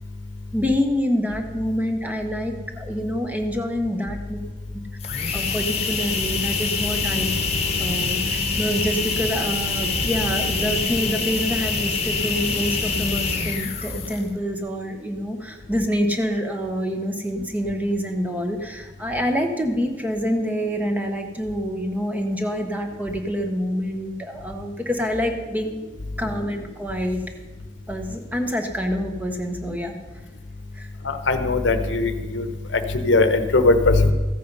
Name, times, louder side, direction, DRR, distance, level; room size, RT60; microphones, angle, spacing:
voice 1, 0.5-4.4 5.3-7.3 7.8-25.7 26.2-27.2 27.9-30.0 30.7-30.9, equal, 10° right, 4 dB, 0.9 m, -26 dB
sound 1, 5.0-14.4, left 4 dB, 35° left, 1.1 m, -25 dB
voice 2, 31.0-32.5 32.7-34.1, left 3 dB, 75° left, 9 dB, 1.0 m, -19 dB
14.5 x 8.5 x 5.4 m, 1.3 s
head